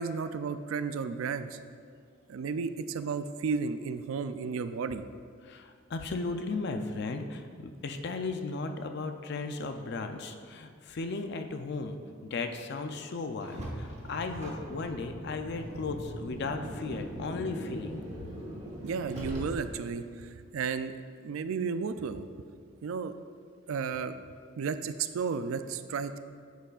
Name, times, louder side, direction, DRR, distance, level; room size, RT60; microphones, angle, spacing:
voice 1, 0.0-1.6 2.3-5.0 18.8-20.9 21.2-22.2 22.8-23.1 23.7-24.1 24.6-26.2, right 5 dB, 90° right, 11 dB, 0.4 m, -33 dB
voice 2, 5.4-12.0 12.2-18.3, left 3 dB, 55° left, 6 dB, 0.5 m, -36 dB
Car, 13.4-19.9, equal, 35° right, 1.1 m, -40 dB
9.1 x 6.7 x 2.4 m, 2.1 s
head